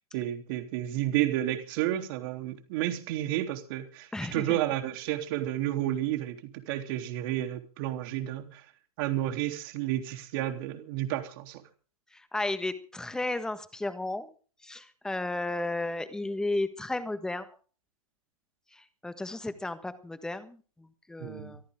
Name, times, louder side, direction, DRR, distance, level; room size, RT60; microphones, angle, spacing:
voice 1, 0.1-8.7 9.0-11.6 21.2-21.6, right 13 dB, 40° right, 6 dB, 3.4 m, -31 dB
voice 2, 4.1-4.6 12.1-14.3 14.6-17.5 18.7-21.6, left 2 dB, 5° left, 11 dB, 1.5 m, -34 dB
23.5 x 14.0 x 3.7 m, 0.40 s
hypercardioid pair, 135°, 18 cm